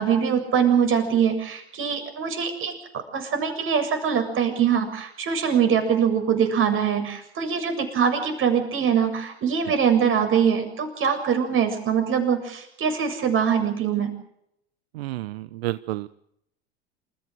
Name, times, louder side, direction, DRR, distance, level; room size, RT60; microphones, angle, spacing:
voice 1, 0.0-14.1, right 7 dB, 40° right, 6 dB, 7.4 m, -23 dB
voice 2, 14.9-16.1, right 17 dB, 70° right, 15 dB, 0.9 m, -30 dB
28.0 x 15.0 x 7.8 m, 0.75 s
hypercardioid pair, 85°, 32 cm